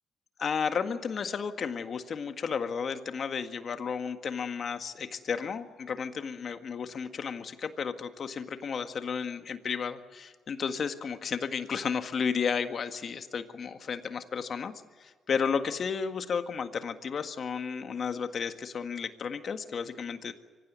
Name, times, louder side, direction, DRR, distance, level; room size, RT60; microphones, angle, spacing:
voice 1, 0.4-14.7 15.0-20.3, left 6 dB, 50° left, 8 dB, 1.7 m, -33 dB
24.5 x 16.0 x 9.4 m, 1.5 s
cardioid pair, 90°, 0 cm